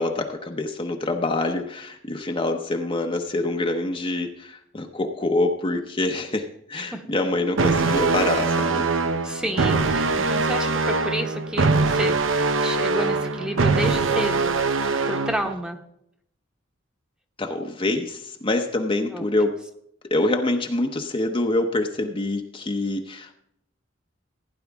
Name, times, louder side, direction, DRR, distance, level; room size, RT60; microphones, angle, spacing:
voice 1, 0.0-8.8 17.4-19.6 20.1-23.3, left 2 dB, 25° left, 3 dB, 0.8 m, -25 dB
sound 1, 7.6-15.5, right 3 dB, 80° right, 0.8 m, -22 dB
voice 2, 9.2-12.2 12.6-14.6 15.0-15.8 19.1-19.3, equal, 5° right, 4 dB, 1.1 m, -30 dB
16.0 x 9.9 x 3.5 m, 0.74 s
head